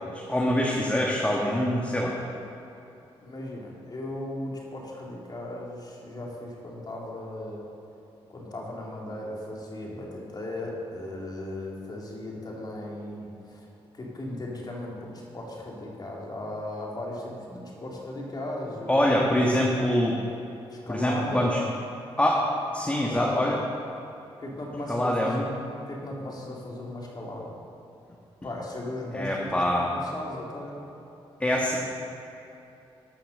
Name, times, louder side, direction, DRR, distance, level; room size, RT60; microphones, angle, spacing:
voice 1, 0.1-2.2 18.9-20.2 20.9-21.6 22.2-22.4 22.7-23.6 24.9-25.5 29.1-29.9 31.4-31.8, left 1 dB, 10° left, -3 dB, 1.5 m, -24 dB
voice 2, 3.2-7.6 8.3-13.7 13.9-19.1 20.7-21.6 22.8-23.6 24.4-25.6 25.9-27.5 28.4-29.6 29.9-30.8, left 1 dB, 40° left, -3 dB, 2.8 m, -37 dB
13.5 x 5.9 x 6.5 m, 2.9 s
cardioid pair, 70°, 11 cm